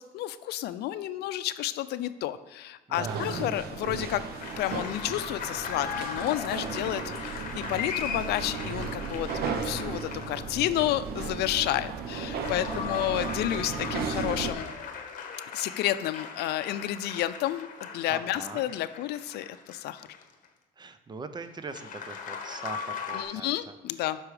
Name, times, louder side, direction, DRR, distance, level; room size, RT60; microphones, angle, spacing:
voice 1, 0.0-4.2 4.6-9.3 9.6-14.7 15.5-20.1 23.1-24.2, left 13 dB, 75° left, 13 dB, 0.5 m, -31 dB
voice 2, 2.9-3.4 12.5-13.1 18.1-18.6 20.8-23.7, right 4 dB, 25° right, 10 dB, 0.7 m, -41 dB
sound 1, 2.9-14.5, right 5 dB, 65° right, 1.0 m, -35 dB
sound 2, 4.2-10.8 12.1-20.5 21.7-23.2, left 6 dB, 50° left, 1.3 m, -38 dB
8.2 x 6.1 x 4.9 m, 1.1 s
cardioid pair, 110°, 17 cm